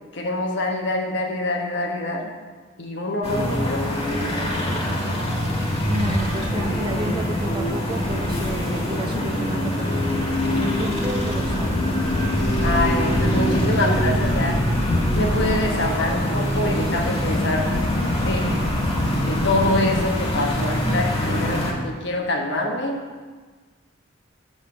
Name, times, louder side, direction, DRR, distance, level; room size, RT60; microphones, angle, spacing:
voice 1, 0.1-2.3 2.8-3.9 12.6-14.7 15.1-17.8 18.2-18.6 19.2-23.2, left 1 dB, 65° left, 2 dB, 1.2 m, -25 dB
sound 1, 3.2-21.7, left 1 dB, 30° left, 1.5 m, -23 dB
voice 2, 5.9-11.8, right 1 dB, 25° right, 3 dB, 0.8 m, -31 dB
6.7 x 5.6 x 6.9 m, 1.5 s
head